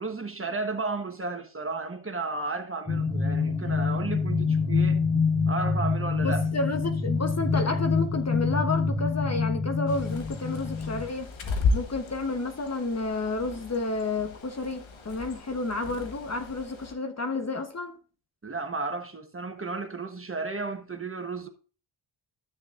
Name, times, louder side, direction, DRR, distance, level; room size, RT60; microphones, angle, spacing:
voice 1, 0.0-5.0 5.5-6.4 18.4-21.5, right 3 dB, 25° right, 1.3 m, -33 dB
sound 1, 2.9-11.1, left 4 dB, 10° left, 1.3 m, -26 dB
voice 2, 6.2-11.3 11.7-18.0, left 3 dB, 35° left, 1.2 m, -31 dB
Bird, 9.9-16.9, left 3 dB, 80° left, 1.5 m, -34 dB
13.0 x 6.4 x 2.5 m
cardioid pair, 75°, 47 cm